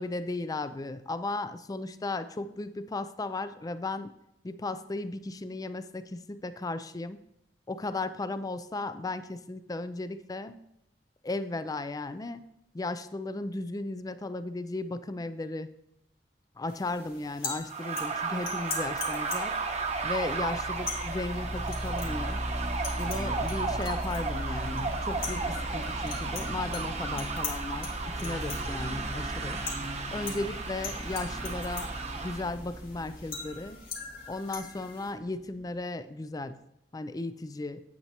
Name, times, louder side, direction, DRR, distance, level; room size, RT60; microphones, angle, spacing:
voice 1, 0.0-4.1 4.4-7.2 7.7-10.6 11.2-12.5 12.7-15.7 16.6-19.6 20.0-22.4 23.0-29.6 30.1-33.8 34.3-36.6 36.9-37.8, left 2 dB, 20° left, 12 dB, 0.4 m, -35 dB
sound 1, 16.7-35.1, left 5 dB, 60° left, 1.7 m, -43 dB
sound 2, 17.7-32.5, right 4 dB, 40° right, 0.8 m, -34 dB
sound 3, 18.4-35.8, equal, 5° right, 0.8 m, -38 dB
8.7 x 8.1 x 2.9 m, 0.81 s
head